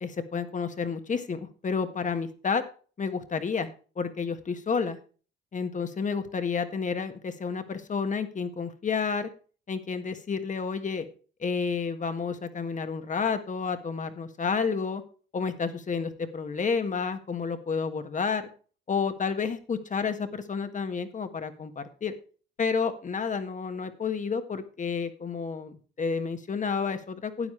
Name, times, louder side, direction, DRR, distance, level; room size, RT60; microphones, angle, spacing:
voice 1, 0.0-2.6 3.0-5.0 5.5-9.3 9.7-11.1 11.4-15.0 15.3-18.5 18.9-22.1 22.6-27.5, left 5 dB, 40° left, 9 dB, 1.6 m, -30 dB
13.0 x 9.3 x 3.3 m, 0.38 s
cardioid pair, 90°, 20 cm